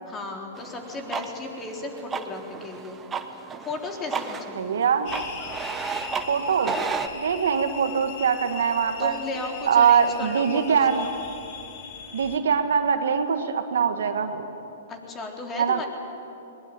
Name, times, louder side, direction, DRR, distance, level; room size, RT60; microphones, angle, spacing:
voice 1, 0.1-3.0 3.2-4.7 9.0-11.1 14.9-15.9, left 2 dB, 20° left, 1 dB, 3.8 m, -35 dB
sound 1, 0.6-7.1, right 5 dB, 15° right, 1.2 m, -34 dB
voice 2, 4.6-5.1 6.3-6.8 7.1-9.2 9.7-11.1 12.1-14.5 15.6-15.8, right 7 dB, 75° right, 7 dB, 1.7 m, -22 dB
sound 2, 5.0-12.4, left 6 dB, 50° left, 2.9 m, -40 dB
21.0 x 20.5 x 9.1 m, 2.9 s
hypercardioid pair, 125°, 0 cm